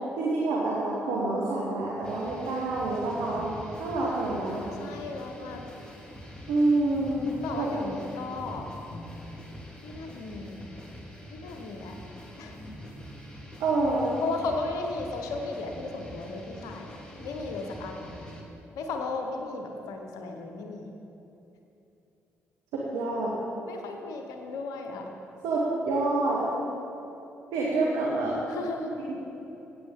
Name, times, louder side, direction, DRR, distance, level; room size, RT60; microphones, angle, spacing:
voice 1, 0.2-3.5 3.8-4.6 6.5-7.7 13.6-14.1 22.7-23.4 25.4-26.4 27.5-28.4 29.1-29.2, right 2 dB, 70° right, -4 dB, 1.5 m, -27 dB
sound 1, 2.0-18.4, equal, 15° left, 2.4 m, -44 dB
voice 2, 4.8-5.6 7.4-8.6 9.8-10.6 11.3-11.9 12.4-12.5 14.2-18.1 18.7-20.9 23.7-25.1 26.3-26.8 28.5-29.0, left 3 dB, 70° left, 4 dB, 1.1 m, -35 dB
15.5 x 8.5 x 3.8 m, 2.9 s
hypercardioid pair, 40°, 6 cm